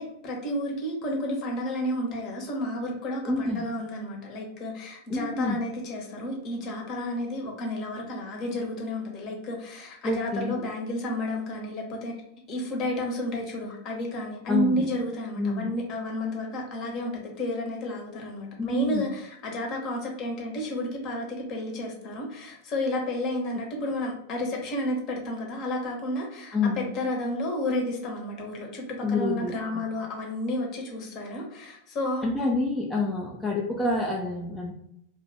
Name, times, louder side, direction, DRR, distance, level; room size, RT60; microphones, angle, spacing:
voice 1, 0.0-12.2 12.5-32.3, left 1 dB, 35° left, 0 dB, 1.0 m, -31 dB
voice 2, 3.2-3.7 5.1-5.6 10.0-10.7 14.5-14.9 15.4-15.7 18.6-19.1 26.5-26.9 29.0-29.9 32.2-34.7, left 3 dB, 10° left, -3 dB, 0.5 m, -28 dB
2.5 x 2.4 x 3.4 m, 0.77 s
figure-of-eight pair, 90°, 0 cm